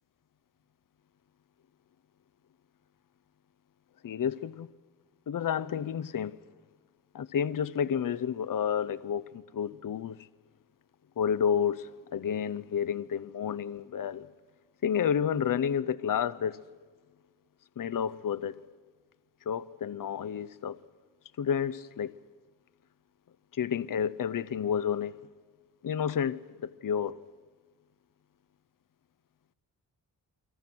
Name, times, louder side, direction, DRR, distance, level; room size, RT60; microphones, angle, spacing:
voice 1, 4.0-4.7 5.3-6.4 7.1-10.2 11.2-14.3 14.8-16.6 17.8-18.5 19.5-20.8 21.4-22.1 23.5-25.2 25.8-27.2, left 8 dB, 50° left, 0.6 m, -30 dB
29.5 x 24.5 x 6.1 m
wide cardioid pair, 85°, 41 cm